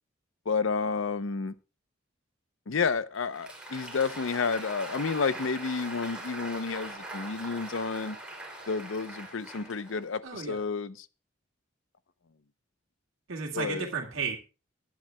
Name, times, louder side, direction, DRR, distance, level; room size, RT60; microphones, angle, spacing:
voice 1, 0.5-1.5 2.7-8.2 8.7-11.1 13.5-13.9, left 5 dB, 75° left, 0.6 m, -30 dB
Applause, 3.1-10.3, right 1 dB, 5° right, 2.7 m, -42 dB
voice 2, 10.2-10.6 13.3-14.4, right 5 dB, 85° right, 2.0 m, -33 dB
20.5 x 10.5 x 2.2 m
head